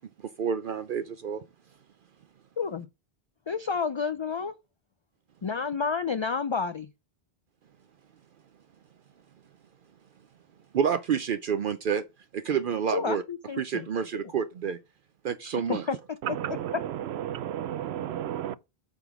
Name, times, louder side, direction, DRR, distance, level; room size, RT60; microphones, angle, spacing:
voice 1, 0.4-1.4 10.7-12.0 12.3-13.2 13.6-14.8 15.2-16.0, right 7 dB, 60° right, 0.7 m, -28 dB
voice 2, 2.6-2.9 3.5-4.5 5.4-6.9 12.9-13.9 14.1-14.2 15.4-16.0, left 5 dB, 45° left, 0.3 m, -30 dB
voice 3, 16.2-18.6, right 11 dB, 90° right, 0.9 m, -33 dB
8.2 x 3.8 x 5.9 m
omnidirectional pair, 1.0 m